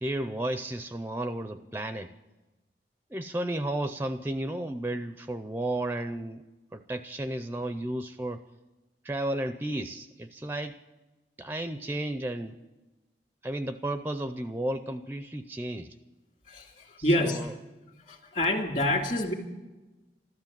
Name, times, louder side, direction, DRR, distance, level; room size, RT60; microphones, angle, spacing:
voice 1, 0.0-2.1 3.1-6.4 6.7-8.4 9.0-10.8 11.4-12.6 13.4-16.0 17.0-17.5, right 1 dB, 10° right, 10 dB, 0.4 m, -33 dB
voice 2, 16.5-17.5 18.1-19.3, left 1 dB, 45° left, 3 dB, 2.2 m, -27 dB
13.5 x 13.0 x 7.3 m, 1.1 s
head